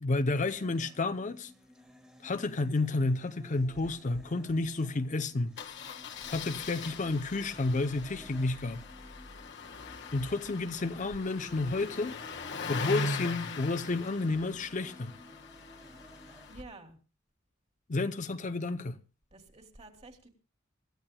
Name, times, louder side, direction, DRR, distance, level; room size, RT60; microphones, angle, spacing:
voice 1, 0.0-1.5 2.2-5.6 6.3-8.8 10.1-12.2 12.7-15.2 17.9-19.0, left 2 dB, 35° left, 0.6 m, -31 dB
sound 1, 0.5-16.5, equal, 5° right, 2.0 m, -56 dB
Engine starting, 3.6-3.9 4.1-4.2 4.5-4.7 5.6-16.6, left 3 dB, 60° left, 1.4 m, -40 dB
voice 2, 16.5-17.0 19.3-20.3, right 2 dB, 30° right, 2.7 m, -50 dB
26.0 x 14.0 x 2.2 m
head